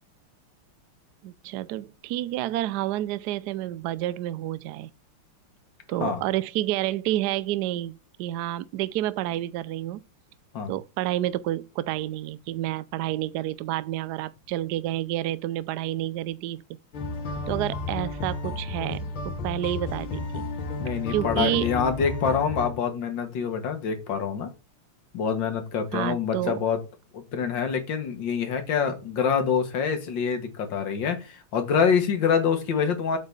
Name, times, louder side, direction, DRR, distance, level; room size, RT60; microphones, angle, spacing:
voice 1, 1.2-4.9 5.9-10.0 10.7-16.6 17.5-20.5 21.1-21.7 25.9-26.6, right 14 dB, 80° right, 0.9 m, -29 dB
sound 1, 16.9-22.7, left 3 dB, 80° left, 2.6 m, -32 dB
voice 2, 20.8-24.5 25.1-26.8 27.1-33.2, left 6 dB, 60° left, 2.0 m, -26 dB
8.1 x 3.8 x 5.3 m
omnidirectional pair, 2.3 m